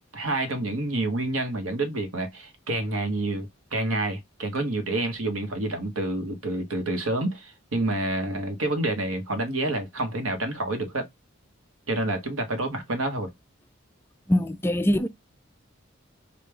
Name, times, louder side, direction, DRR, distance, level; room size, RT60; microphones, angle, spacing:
voice 1, 0.0-11.1 11.9-13.3, right 2 dB, 85° right, 1.2 m, -28 dB
voice 2, 14.3-15.1, left 1 dB, 10° left, 0.3 m, -23 dB
5.1 x 2.5 x 3.3 m
head